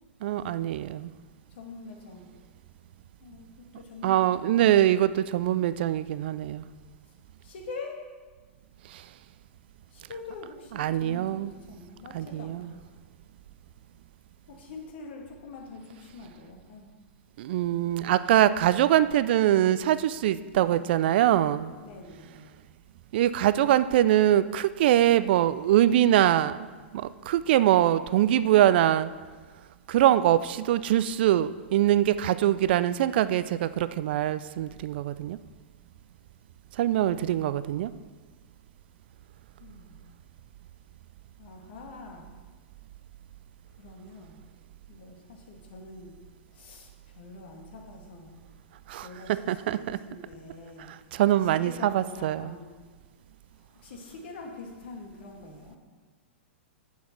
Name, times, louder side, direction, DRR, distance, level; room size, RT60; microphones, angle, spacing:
voice 1, 0.2-1.1 4.0-6.6 8.9-9.0 10.8-11.5 12.1-12.7 17.4-21.7 23.1-26.6 26.9-29.1 29.9-35.4 36.8-37.9 48.9-49.1 49.5-50.0 51.1-52.5, right 12 dB, 55° right, 15 dB, 0.4 m, -23 dB
voice 2, 1.5-2.3 3.2-4.7 7.4-8.0 9.9-13.0 14.5-16.9 20.5-20.9 21.8-22.5 37.0-37.4 39.6-40.0 41.4-42.3 43.8-44.4 44.9-46.2 46.5-48.4 49.0-50.9 51.4-52.7 53.7-55.8, left 3 dB, 60° left, 1 dB, 1.8 m, -45 dB
7.0 x 6.3 x 5.9 m, 1.4 s
hypercardioid pair, 110°, 7 cm